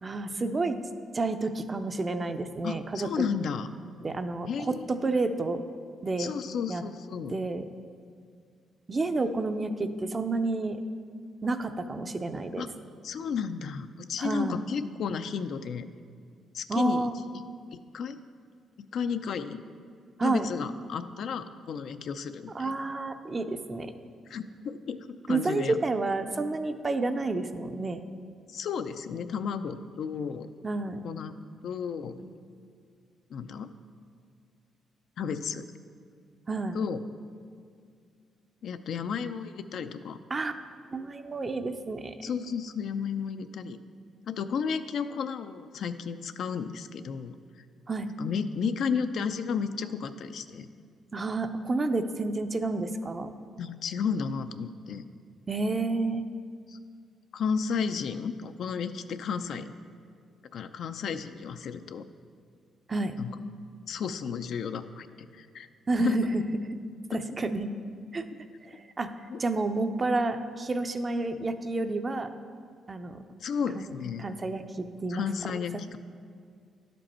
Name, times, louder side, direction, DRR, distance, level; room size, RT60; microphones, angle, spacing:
voice 1, 0.0-0.8 1.1-3.3 4.0-5.6 6.0-6.3 6.7-6.8 7.3-7.6 8.9-10.8 11.4-12.6 14.2-14.6 16.7-17.1 20.2-20.5 22.5-23.9 25.3-28.0 30.6-31.0 32.2-32.3 36.5-36.8 40.3-40.5 40.9-42.2 47.9-48.1 51.1-53.3 55.5-56.3 62.9-63.2 65.9-66.4 67.1-67.7 68.1-68.3 68.6-69.1 69.4-72.3 72.9-73.2 73.7-73.9 74.2-75.2 75.5-75.6, right 3 dB, 30° right, 9 dB, 0.5 m, -30 dB
voice 2, 2.6-3.7 4.5-4.8 6.2-7.4 12.6-12.7 13.0-15.9 16.5-17.4 17.7-18.2 18.8-19.6 20.2-22.9 24.3-25.8 28.5-30.5 31.0-32.2 33.3-33.7 35.2-35.7 36.7-37.0 38.6-40.2 42.2-43.8 44.3-47.4 48.2-50.7 53.6-55.0 56.7-56.8 57.3-59.7 60.5-62.0 63.2-63.3 63.9-65.7 66.0-66.3 67.1-67.2 69.3-69.4 73.4-74.3 75.1-76.0, left 6 dB, 65° left, 10 dB, 0.4 m, -33 dB
11.0 x 5.2 x 4.3 m, 2.1 s
cardioid pair, 90°, 0 cm